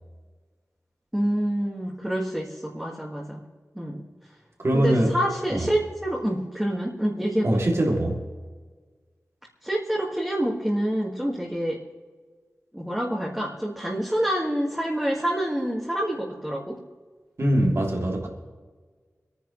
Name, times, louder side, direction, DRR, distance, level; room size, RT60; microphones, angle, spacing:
voice 1, 1.1-3.4 3.8-4.1 4.7-7.5 9.6-11.8 12.7-16.8, equal, 10° right, -3 dB, 2.0 m, -27 dB
voice 2, 4.6-5.2 5.5-5.6 7.4-8.2 17.4-18.3, right 1 dB, 55° right, -1 dB, 3.0 m, -22 dB
26.5 x 10.5 x 3.3 m, 1.5 s
wide cardioid pair, 75°, 5 cm